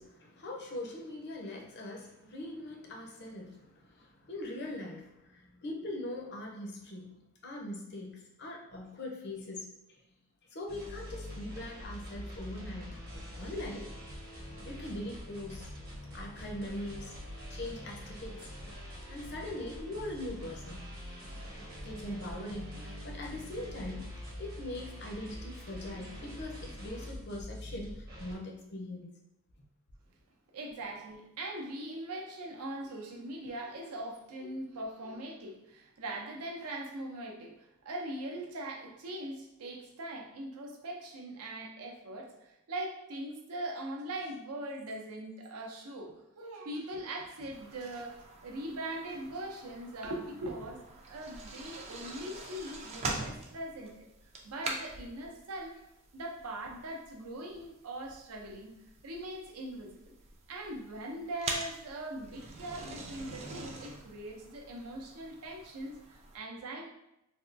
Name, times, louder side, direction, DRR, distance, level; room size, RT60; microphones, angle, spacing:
voice 1, 0.0-7.2 7.4-9.7 10.5-12.9 13.1-13.9 14.6-15.7 16.1-17.1 17.5-18.5 19.1-20.8 21.8-24.0 24.4-29.1 33.8-33.9 34.4-34.5 35.1-35.2, left 1 dB, 50° left, 0 dB, 0.6 m, -41 dB
sound 1, 10.7-28.3, equal, 45° right, 0.8 m, -44 dB
voice 2, 30.5-54.1 54.4-55.8 56.1-58.7 59.0-60.0 60.5-66.9, right 1 dB, 90° right, 1 dB, 0.6 m, -41 dB
sound 2, 47.5-66.4, right 2 dB, 30° right, 0.3 m, -44 dB
3.4 x 2.3 x 2.5 m, 0.87 s
head